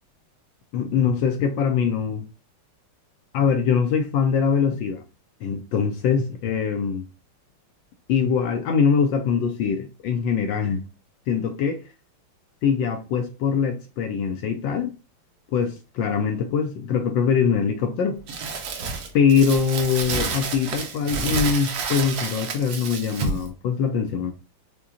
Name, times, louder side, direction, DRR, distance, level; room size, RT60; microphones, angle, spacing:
voice 1, 0.7-2.3 3.3-5.0 5.4-7.1 8.1-10.8 11.3-11.8 12.6-14.9 15.5-18.2 19.1-24.3, left 6 dB, 75° left, 1.1 m, -23 dB
Crumpling crinkling, 18.3-23.5, right 4 dB, 65° right, 0.9 m, -29 dB
4.9 x 2.2 x 2.8 m
omnidirectional pair, 2.4 m